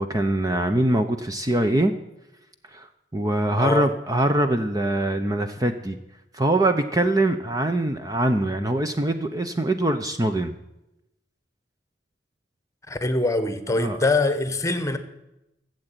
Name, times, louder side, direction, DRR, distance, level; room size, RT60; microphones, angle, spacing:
voice 1, 0.0-1.9 2.7-2.9 3.1-6.0 6.3-10.5 13.7-14.0, right 1 dB, 20° right, 7 dB, 0.7 m, -23 dB
voice 2, 3.6-3.9 12.9-15.0, left 2 dB, 15° left, 10 dB, 1.2 m, -23 dB
16.5 x 7.9 x 9.0 m, 0.90 s
head